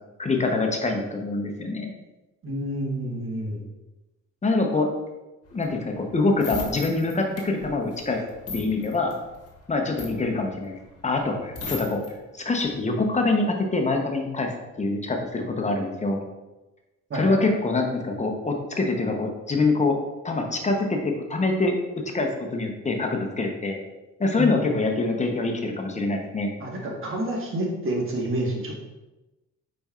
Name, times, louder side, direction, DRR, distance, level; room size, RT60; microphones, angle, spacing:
voice 1, 0.2-1.9 4.4-4.9 5.5-8.2 8.5-9.2 9.7-12.0 12.4-14.5 14.8-16.2 17.1-20.0 20.2-21.7 22.1-23.8 24.2-26.5, left 3 dB, 25° left, 3 dB, 0.7 m, -25 dB
voice 2, 2.4-3.6 17.1-17.4 24.4-24.7 26.6-28.7, right 1 dB, 45° right, -2 dB, 1.3 m, -28 dB
sound 1, 5.5-12.1 12.5-12.8, left 2 dB, 50° left, 1.2 m, -38 dB
5.2 x 4.2 x 2.4 m, 1.1 s
cardioid pair, 90°, 30 cm